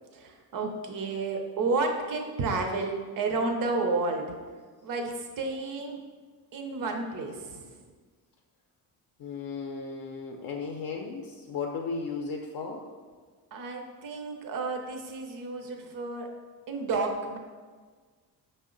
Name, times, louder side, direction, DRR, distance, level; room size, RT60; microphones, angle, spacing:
voice 1, 0.1-4.3 4.8-6.0 6.5-7.8 13.5-16.3 16.7-17.4, right 3 dB, 55° right, 4 dB, 0.6 m, -31 dB
voice 2, 9.2-12.8, left 4 dB, 60° left, 1 dB, 0.5 m, -35 dB
5.2 x 2.1 x 3.7 m, 1.5 s
cardioid pair, 110°, 40 cm